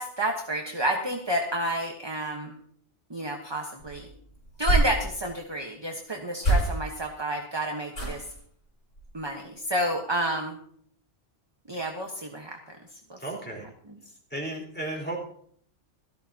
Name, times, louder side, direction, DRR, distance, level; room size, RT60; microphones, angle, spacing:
voice 1, 0.0-2.5 3.1-4.1 4.6-8.2 9.1-10.6 11.7-12.6 13.1-13.2, right 1 dB, 20° right, 2 dB, 1.2 m, -30 dB
sound 1, 3.8-5.5 6.4-7.1 7.9-8.4 8.9-9.2 9.5-9.6, right 2 dB, 85° left, 5.8 m, -27 dB
voice 2, 13.2-13.7 14.3-15.2, right 1 dB, 10° left, -2 dB, 4.2 m, -34 dB
17.0 x 14.0 x 2.9 m, 0.62 s
omnidirectional pair, 1.2 m